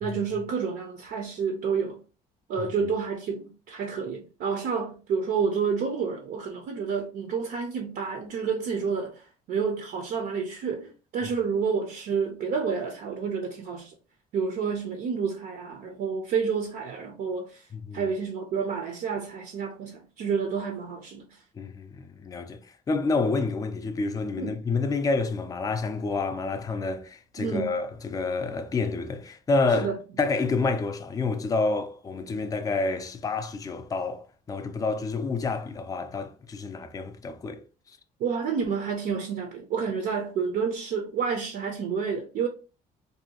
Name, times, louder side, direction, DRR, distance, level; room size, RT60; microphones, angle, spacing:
voice 1, 0.0-2.0 2.5-13.9 14.3-17.6 17.9-21.3 24.4-24.5 27.4-27.8 29.8-30.0 38.2-42.5, right 6 dB, 65° right, 0.5 m, -29 dB
voice 2, 17.7-18.0 21.5-22.6 22.9-29.9 30.2-37.6, left 3 dB, 20° left, 0.4 m, -28 dB
2.6 x 2.2 x 2.8 m
cardioid pair, 110°, 17 cm